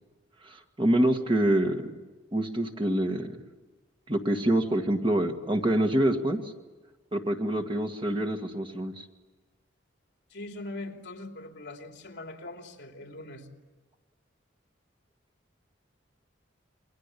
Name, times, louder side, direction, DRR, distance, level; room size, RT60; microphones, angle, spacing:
voice 1, 0.4-2.0 2.3-3.4 4.1-6.4 7.1-9.0, right 1 dB, 25° right, 4 dB, 1.8 m, -26 dB
voice 2, 10.3-13.5, left 2 dB, 60° left, 3 dB, 3.1 m, -41 dB
28.5 x 23.0 x 8.4 m, 1.3 s
head